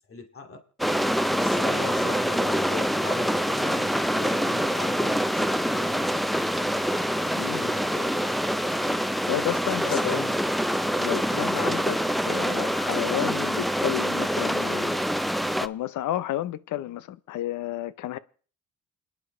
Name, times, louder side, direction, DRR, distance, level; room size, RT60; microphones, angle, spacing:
voice 1, 0.1-0.6 1.3-6.1 7.1-8.1 9.8-10.3 11.3-12.1, left 4 dB, 45° left, 2.4 m, -39 dB
sound 1, 0.8-15.7, equal, ahead, 0.6 m, -25 dB
Piano, 6.8-14.7, left 3 dB, 20° left, 3.9 m, -50 dB
voice 2, 7.4-7.7 9.3-10.2 11.0-12.0 12.2-15.2 15.6-18.2, left 13 dB, 80° left, 0.8 m, -31 dB
29.0 x 10.0 x 3.2 m
cardioid pair, 90°, 30 cm